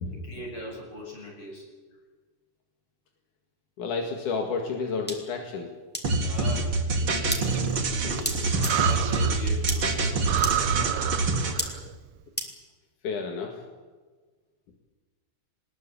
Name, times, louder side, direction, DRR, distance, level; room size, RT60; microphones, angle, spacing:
voice 1, 0.1-1.7 6.2-8.4 8.7-10.2 10.7-11.1, left 1 dB, 45° left, 0 dB, 7.3 m, -40 dB
voice 2, 3.8-5.7 13.0-13.6, left 4 dB, 85° left, 2 dB, 3.5 m, -30 dB
sound 1, 5.1-5.2 5.9-6.0 7.3-7.4 8.2-8.3 8.6-8.7 9.7-9.8 10.4-10.5 11.6-11.7 12.4-12.5, equal, 5° left, 2.4 m, -29 dB
sound 2, 6.0-11.5, right 3 dB, 45° right, 2.8 m, -26 dB
Breathing, 7.4-9.5 9.9-10.0 10.2-11.9, right 11 dB, 75° right, 1.3 m, -30 dB
20.5 x 20.5 x 8.6 m, 1.4 s
omnidirectional pair, 3.5 m